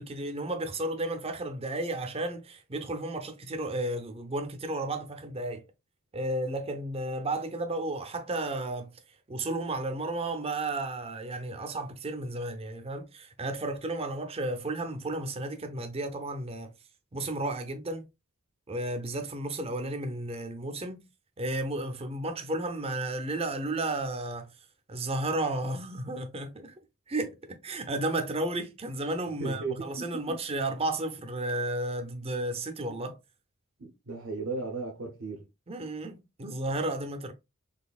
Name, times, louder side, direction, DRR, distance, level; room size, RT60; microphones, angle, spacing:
voice 1, 0.0-5.6 6.1-8.9 9.3-16.7 17.1-18.1 18.7-21.0 21.4-24.5 24.9-26.7 27.1-33.2 35.7-37.3, right 2 dB, 30° right, 0.6 m, -33 dB
voice 2, 29.4-30.4 33.8-35.5, right 4 dB, 65° right, 0.8 m, -36 dB
4.0 x 3.2 x 2.4 m
head